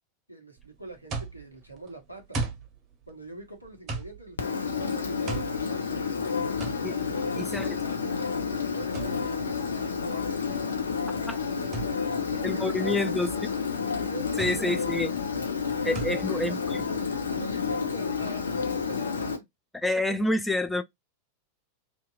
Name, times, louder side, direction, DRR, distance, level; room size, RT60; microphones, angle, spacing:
voice 1, 0.3-2.4 3.1-6.0 6.6-10.7 11.8-13.2 13.8-14.7 15.8-19.3, right 2 dB, 90° left, 0.9 m, -43 dB
sound 1, 0.6-17.8, right 3 dB, 30° right, 0.7 m, -40 dB
Engine, 4.4-19.4, left 5 dB, 70° left, 0.5 m, -30 dB
voice 2, 7.4-7.7 11.3-11.4 12.4-13.3 14.4-15.1 15.9-16.5 19.7-20.8, left 1 dB, 5° left, 0.3 m, -27 dB
2.8 x 2.3 x 2.3 m
figure-of-eight pair, 90°, 0 cm